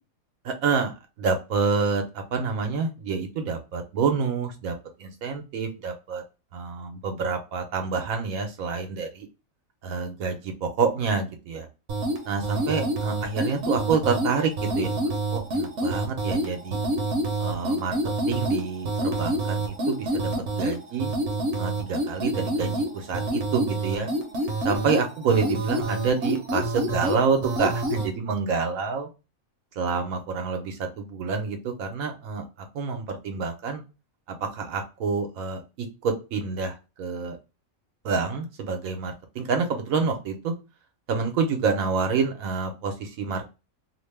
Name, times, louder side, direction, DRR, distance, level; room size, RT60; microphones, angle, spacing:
voice 1, 0.4-0.9 1.2-2.0 2.3-4.7 5.0-6.2 6.5-9.3 9.8-11.7 12.3-14.9 15.3-16.8 17.4-18.0 18.3-21.1 21.6-24.1 24.6-29.1 29.8-32.5 32.7-33.8 34.3-37.4 38.0-40.5 41.1-43.5, right 5 dB, 85° right, 4 dB, 1.2 m, -27 dB
sound 1, 11.9-28.1, right 1 dB, 65° right, 1.0 m, -28 dB
2.9 x 2.1 x 3.2 m, 0.28 s
omnidirectional pair, 1.4 m